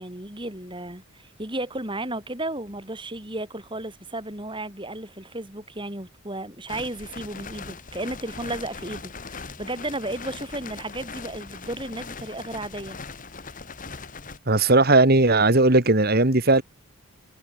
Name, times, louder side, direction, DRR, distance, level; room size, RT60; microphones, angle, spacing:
voice 1, 0.0-13.0, right 1 dB, 20° right, 6.2 m, -34 dB
sound 1, 6.7-14.4, left 4 dB, 35° left, 1.7 m, -40 dB
voice 2, 14.5-16.6, right 2 dB, 45° right, 1.9 m, -17 dB
head